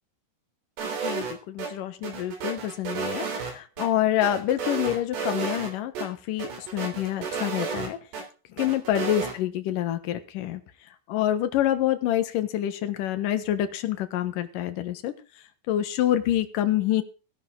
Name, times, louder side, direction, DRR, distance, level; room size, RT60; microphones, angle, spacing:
sound 1, 0.8-1.7 2.0-3.9 4.2-5.7 6.0-6.1 6.4-8.2 8.6-9.3, right 5 dB, 65° right, 5.5 m, -32 dB
voice 1, 1.0-8.0 8.6-10.6 11.1-15.1 15.7-17.0, left 12 dB, 65° left, 9 dB, 2.3 m, -27 dB
18.0 x 10.5 x 3.9 m, 0.33 s
omnidirectional pair, 5.5 m